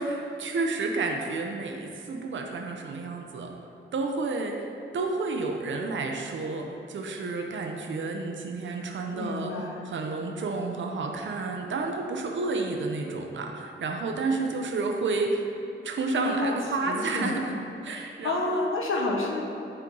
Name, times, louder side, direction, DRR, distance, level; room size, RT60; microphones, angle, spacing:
voice 1, 0.0-3.5 3.9-4.7 4.9-9.5 9.8-15.5 15.8-17.4 17.8-18.6, right 3 dB, 65° right, 2 dB, 0.7 m, -30 dB
voice 2, 9.1-9.8 16.2-16.6 16.8-17.5 18.2-19.4, left 2 dB, 75° left, 0 dB, 1.1 m, -29 dB
9.7 x 4.4 x 3.9 m, 2.7 s
wide cardioid pair, 140°, 21 cm